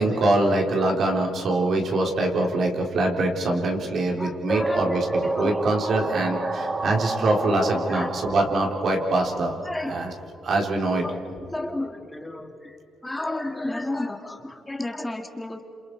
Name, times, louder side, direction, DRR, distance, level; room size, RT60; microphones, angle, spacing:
voice 1, 0.0-9.6 9.9-10.1 10.4-11.0, right 2 dB, 60° right, 1 dB, 3.8 m, -24 dB
voice 2, 4.2-5.0 5.3-5.6 6.1-6.2 7.4-7.5 7.9-8.1 9.6-10.0 11.0-11.2 11.5-12.8 13.0-15.6, left 2 dB, 10° left, 4 dB, 2.2 m, -32 dB
sound 1, 4.5-10.2, right 2 dB, 30° right, 1.9 m, -30 dB
28.0 x 27.5 x 4.7 m, 2.7 s
cardioid pair, 80°, 0 cm